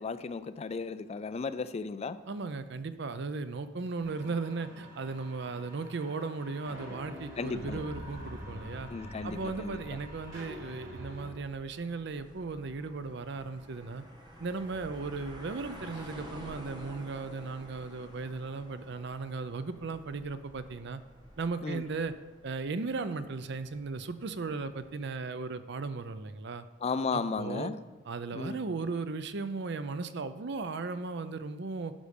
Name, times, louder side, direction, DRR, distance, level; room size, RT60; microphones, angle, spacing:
voice 1, 0.0-2.2 7.4-7.8 8.9-9.8 21.6-21.8 26.8-27.8 28.3-28.6, left 4 dB, 35° left, 13 dB, 0.3 m, -34 dB
voice 2, 2.3-8.9 9.2-14.0 14.4-21.0 21.4-22.1 22.4-26.7 27.1-27.7 28.1-31.9, right 4 dB, 60° right, 11 dB, 0.6 m, -36 dB
sound 1, 4.0-11.3, equal, 90° right, 3.2 m, -45 dB
sound 2, 10.0-24.9, equal, 25° right, 1.4 m, -51 dB
11.5 x 5.4 x 5.2 m, 1.2 s
head